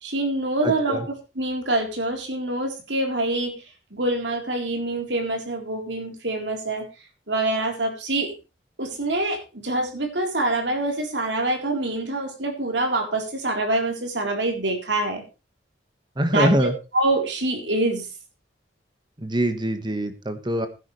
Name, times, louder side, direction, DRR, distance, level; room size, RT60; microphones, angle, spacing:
voice 1, 0.0-1.0 1.4-3.6 3.9-6.9 7.3-8.3 8.8-15.2 16.3-18.1, right 2 dB, 75° right, 3 dB, 3.9 m, -25 dB
voice 2, 0.6-1.0 16.2-16.7 19.2-20.7, right 1 dB, 25° right, 8 dB, 1.5 m, -23 dB
17.0 x 10.0 x 3.3 m, 0.30 s
head